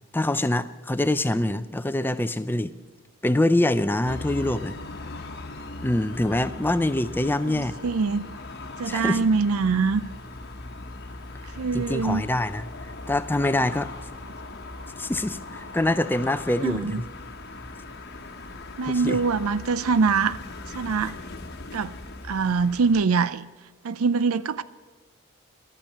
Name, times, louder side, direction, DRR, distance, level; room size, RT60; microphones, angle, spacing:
voice 1, 0.1-2.7 3.2-4.7 5.8-7.7 8.8-9.2 11.7-12.7 13.1-13.9 15.0-17.0 18.9-19.2, left 1 dB, 10° left, 13 dB, 0.4 m, -24 dB
sound 1, 4.1-23.0, left 2 dB, 45° left, 1.1 m, -39 dB
voice 2, 7.2-8.2 8.8-10.0 11.6-12.2 16.6-17.0 18.8-20.4 20.7-21.1 21.7-21.9 22.2-23.5 23.8-24.6, right 4 dB, 75° right, 16 dB, 0.5 m, -24 dB
12.0 x 8.8 x 8.3 m, 1.4 s
head